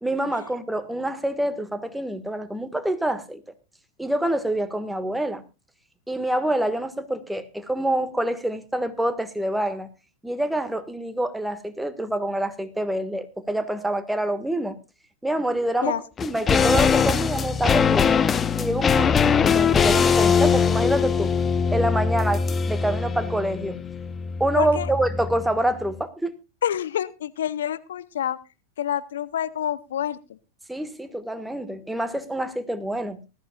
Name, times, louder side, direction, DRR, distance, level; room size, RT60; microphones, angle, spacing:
voice 1, 0.0-3.4 4.0-5.4 6.1-9.9 10.2-14.7 15.2-18.2 18.6-21.3 21.7-23.8 24.4-26.3 30.7-33.2, right 1 dB, 5° right, 1.6 m, -26 dB
sound 1, 16.2-25.6 25.8-25.9, left 6 dB, 25° left, 0.7 m, -22 dB
voice 2, 24.6-24.9 26.6-28.4 28.8-30.2, left 10 dB, 75° left, 0.7 m, -27 dB
19.5 x 14.0 x 2.4 m
hypercardioid pair, 95°, 0 cm